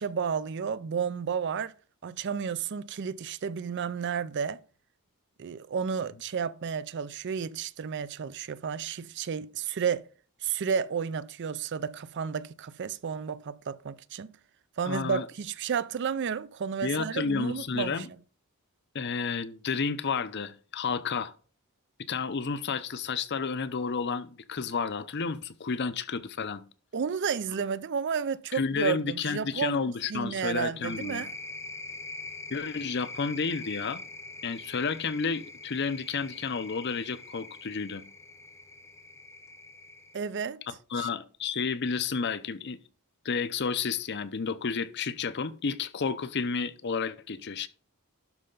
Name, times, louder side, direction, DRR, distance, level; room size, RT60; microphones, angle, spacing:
voice 1, 0.0-1.7 2.0-4.6 5.4-10.1 10.4-14.3 14.8-18.1 26.9-31.3 40.1-40.6 41.0-41.1, right 6 dB, 50° right, 0.4 m, -32 dB
voice 2, 14.8-15.2 16.8-18.1 18.9-21.3 22.1-26.6 28.5-31.3 32.5-34.0 34.4-38.0 40.7-42.8 43.2-47.7, left 5 dB, 50° left, 0.6 m, -31 dB
sound 1, 30.8-40.2, left 3 dB, 10° left, 0.8 m, -43 dB
12.0 x 5.4 x 3.9 m
head